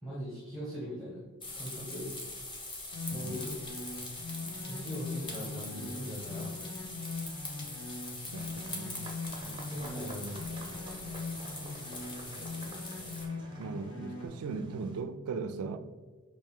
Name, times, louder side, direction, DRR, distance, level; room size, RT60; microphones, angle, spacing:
voice 1, 0.0-2.2 3.1-3.6 4.6-6.6 9.4-10.4 11.5-11.7 12.0-12.1, equal, ahead, 1.0 m, -41 dB
sound 1, 1.4-13.2, left 2 dB, 20° left, 0.7 m, -43 dB
sound 2, 2.9-14.3, left 3 dB, 80° left, 1.0 m, -41 dB
voice 2, 3.1-3.4 8.3-9.0 13.6-15.8, right 4 dB, 80° right, 0.3 m, -38 dB
sound 3, 8.3-15.0, right 2 dB, 20° right, 0.5 m, -50 dB
5.3 x 2.6 x 3.5 m
head